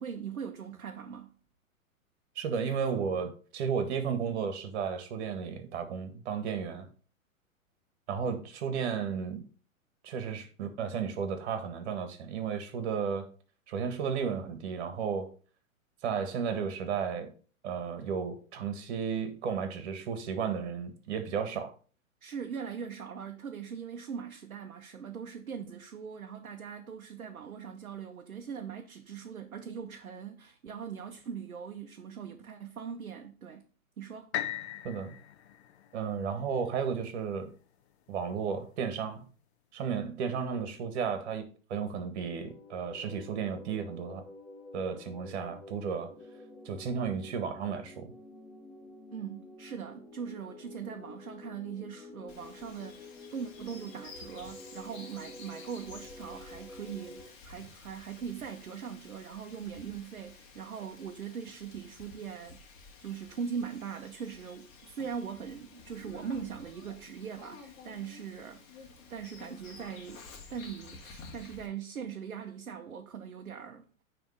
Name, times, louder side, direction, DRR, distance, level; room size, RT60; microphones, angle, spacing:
voice 1, 0.0-1.4 22.2-33.6 34.0-34.3 49.1-62.6 63.0-73.9, right 7 dB, 80° right, 0.9 m, -41 dB
voice 2, 2.3-6.9 8.1-9.4 10.0-13.3 13.7-15.3 16.0-17.3 17.6-21.7 34.8-35.1 35.9-37.5 38.1-39.3 39.7-44.2 44.7-46.1 46.6-48.1, right 6 dB, 50° right, 1.7 m, -33 dB
sound 1, 34.3-38.3 38.9-39.0, left 12 dB, 50° left, 0.9 m, -40 dB
sound 2, 42.3-57.3, left 2 dB, 5° left, 0.4 m, -49 dB
Bird vocalization bird call bird song, 52.3-71.7, left 4 dB, 30° left, 1.8 m, -52 dB
9.4 x 3.6 x 5.0 m
figure-of-eight pair, 115°, 42 cm